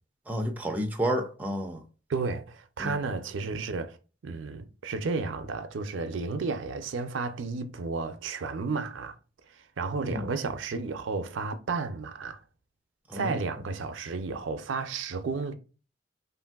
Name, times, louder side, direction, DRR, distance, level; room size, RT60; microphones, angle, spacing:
voice 1, 0.3-1.8 2.8-3.0 10.0-10.2 13.1-13.4, equal, 10° right, 0.4 m, -30 dB
voice 2, 2.1-4.0 4.2-9.1 9.8-12.4 13.1-15.5, right 4 dB, 80° right, 0.5 m, -32 dB
3.2 x 2.5 x 2.3 m
head